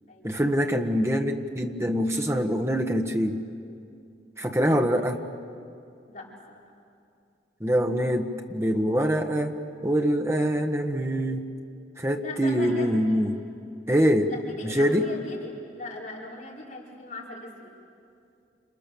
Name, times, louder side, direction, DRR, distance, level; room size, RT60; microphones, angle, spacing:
voice 1, 0.2-3.4 4.4-5.2 7.6-9.6 9.8-11.4 12.0-13.4 13.9-14.3 14.6-15.1, equal, 15° right, 4 dB, 1.5 m, -24 dB
voice 2, 4.5-4.9 6.1-6.6 12.2-13.3 14.3-17.7, left 2 dB, 50° left, -5 dB, 5.3 m, -40 dB
29.0 x 27.5 x 7.1 m, 2.5 s
head